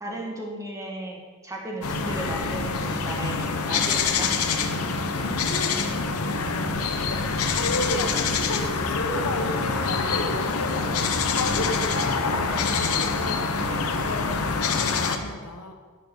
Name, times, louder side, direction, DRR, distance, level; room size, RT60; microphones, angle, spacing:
voice 1, 0.0-4.4, right 1 dB, 15° right, -1 dB, 1.3 m, -35 dB
sound 1, 1.8-15.2, left 4 dB, 75° left, 0.8 m, -26 dB
voice 2, 5.1-15.7, left 2 dB, 90° left, 4 dB, 1.1 m, -33 dB
9.7 x 4.5 x 6.6 m, 1.5 s
head